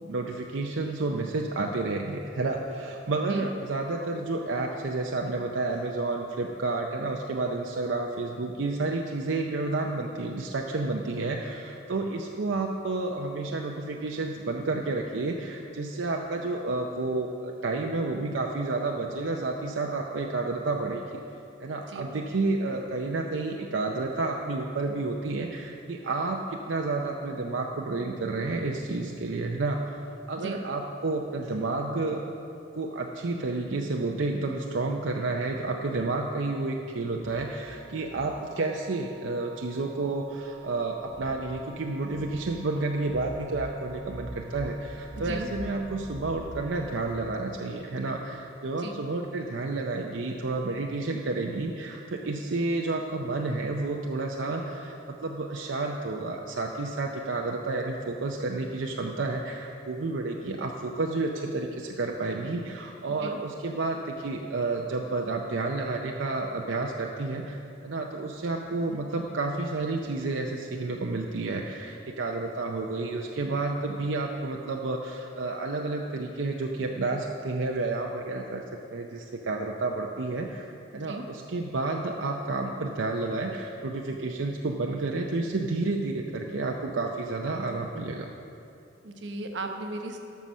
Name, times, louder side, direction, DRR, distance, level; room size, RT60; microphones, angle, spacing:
voice 1, 0.0-21.2 21.6-30.0 30.3-32.2 32.7-78.6 78.9-88.3, right 3 dB, 90° right, 1 dB, 0.6 m, -30 dB
sound 1, 37.2-47.2, right 2 dB, 20° right, 0.6 m, -44 dB
voice 2, 45.2-45.5 48.8-48.9 63.2-63.4 80.9-81.2 89.0-90.2, right 2 dB, 70° right, 4 dB, 1.0 m, -36 dB
13.0 x 5.7 x 6.1 m, 2.7 s
head